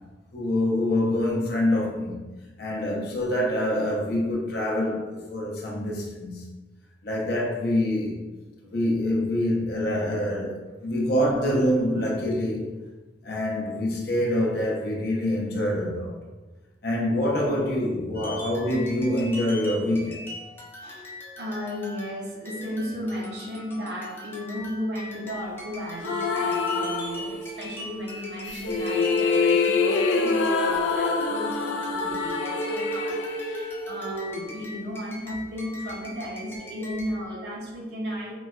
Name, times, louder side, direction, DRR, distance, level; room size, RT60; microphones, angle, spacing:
voice 1, 0.3-2.3 2.6-6.4 7.0-8.2 8.7-12.8 13.2-16.2 16.8-20.2 20.8-21.1, left 1 dB, 60° left, 0.6 m, -26 dB
sound 1, 18.1-37.2, left 1 dB, 15° left, 0.5 m, -42 dB
voice 2, 21.4-38.3, equal, 65° right, 0.7 m, -34 dB
sound 2, 26.0-27.7 28.4-34.5, left 4 dB, 90° left, 0.3 m, -25 dB
3.8 x 2.1 x 2.3 m
head